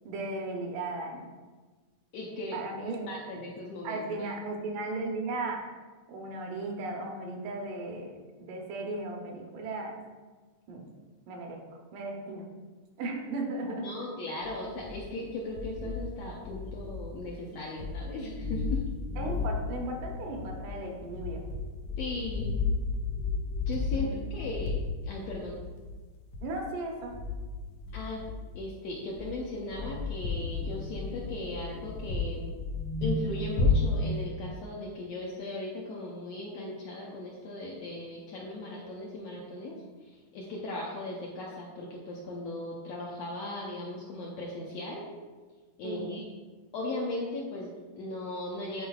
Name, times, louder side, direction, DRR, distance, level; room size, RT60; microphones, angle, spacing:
voice 1, 0.0-1.3 2.5-3.4 3.8-5.6 6.1-10.0 10.7-10.9 11.3-11.6 11.9-12.5 13.0-13.9 19.2-21.4 23.9-24.1 26.4-27.1 45.8-46.2, right 2 dB, 80° right, 1 dB, 2.4 m, -36 dB
voice 2, 2.1-2.6 3.1-4.3 13.8-18.8 22.0-22.6 23.7-24.8 25.0-25.6 27.9-28.2 28.5-32.5 33.0-39.7 40.3-45.0 45.8-46.2 46.7-48.9, left 2 dB, 75° left, -3 dB, 1.6 m, -37 dB
sound 1, 14.4-15.3 15.6-17.4 17.7-28.8 29.0-34.3, left 3 dB, 90° left, 1.3 m, -33 dB
9.3 x 4.5 x 2.4 m, 1.3 s
omnidirectional pair, 3.6 m